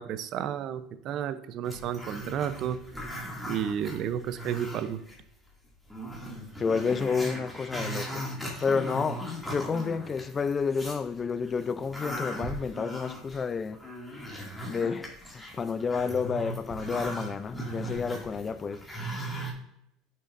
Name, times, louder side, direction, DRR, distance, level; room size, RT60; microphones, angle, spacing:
voice 1, 0.0-2.8 3.4-5.0, right 9 dB, 50° right, 0.6 m, -32 dB
Growling, 1.6-5.2 5.5-5.6 5.9-11.0 11.5-19.5, equal, 5° left, 2.2 m, -38 dB
voice 2, 6.6-8.3 8.6-13.8 14.7-18.8, left 5 dB, 25° left, 0.4 m, -30 dB
8.2 x 6.4 x 2.5 m
supercardioid pair, 115°, 0 cm